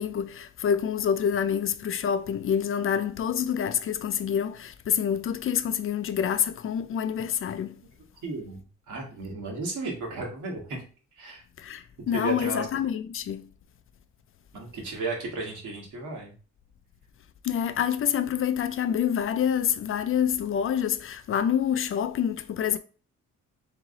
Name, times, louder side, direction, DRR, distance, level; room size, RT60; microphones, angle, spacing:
voice 1, 0.0-7.8 11.6-13.5 17.4-22.8, left 8 dB, 45° left, 0.4 m, -27 dB
voice 2, 8.2-10.8 11.2-11.4 12.1-12.7 14.5-16.3, right 3 dB, 75° right, 1.8 m, -34 dB
3.6 x 3.2 x 3.8 m
cardioid pair, 90°, 30 cm